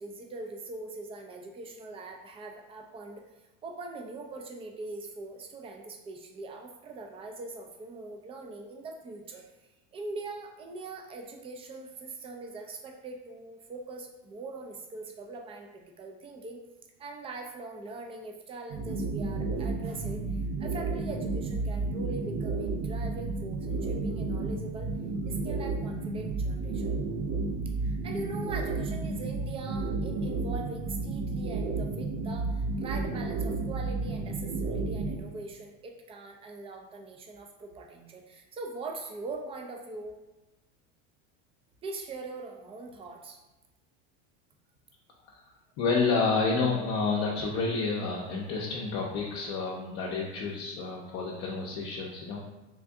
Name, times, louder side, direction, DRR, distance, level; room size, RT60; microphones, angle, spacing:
voice 1, 0.0-3.2 3.6-9.5 9.9-16.6 17.0-24.9 25.2-27.0 27.8-40.2 41.8-43.4, right 3 dB, 15° right, 2 dB, 0.3 m, -42 dB
sound 1, 18.7-35.2, right 3 dB, 70° right, 0.7 m, -32 dB
voice 2, 45.8-52.4, left 4 dB, 45° left, -3 dB, 0.6 m, -29 dB
3.6 x 2.5 x 3.4 m, 1.1 s
supercardioid pair, 130°, 38 cm